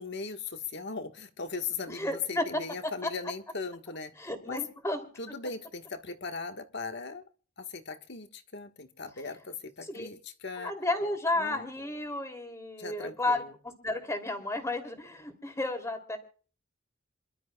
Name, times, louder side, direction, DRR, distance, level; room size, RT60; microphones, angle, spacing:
voice 1, 0.0-4.6 5.2-7.2 7.6-10.7 11.4-11.7 12.8-13.5, left 4 dB, 60° left, 6 dB, 1.5 m, -39 dB
voice 2, 1.9-2.6 3.0-3.1 4.2-5.0 9.9-10.1 10.6-13.4 13.8-16.2, left 2 dB, 15° left, 5 dB, 2.9 m, -32 dB
27.5 x 12.5 x 2.3 m, 0.40 s
head